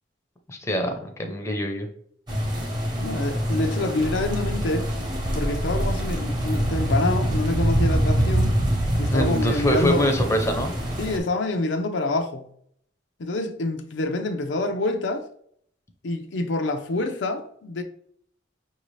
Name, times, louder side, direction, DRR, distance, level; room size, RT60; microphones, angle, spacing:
voice 1, 0.5-1.9 9.1-10.7, equal, 15° left, 0.6 m, -24 dB
sound 1, 2.3-11.2, equal, 25° right, 0.9 m, -25 dB
voice 2, 3.0-4.9 5.3-8.6 9.0-10.1 11.0-12.5 13.2-15.2 16.0-17.8, left 2 dB, 75° left, 0.5 m, -26 dB
5.5 x 2.7 x 3.1 m
head